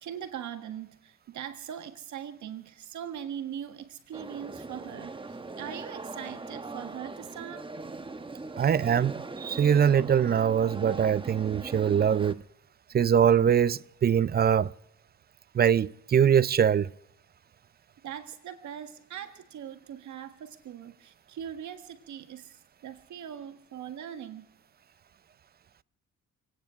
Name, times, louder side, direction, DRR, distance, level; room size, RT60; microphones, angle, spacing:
voice 1, 0.0-7.7 18.0-24.5, right 9 dB, 70° right, 1.6 m, -41 dB
sound 1, 4.1-12.3, right 3 dB, 15° right, 1.0 m, -40 dB
voice 2, 8.6-12.4 12.9-14.7 15.5-16.9, right 8 dB, 35° right, 0.4 m, -23 dB
27.0 x 9.6 x 5.0 m
cardioid pair, 90°, 30 cm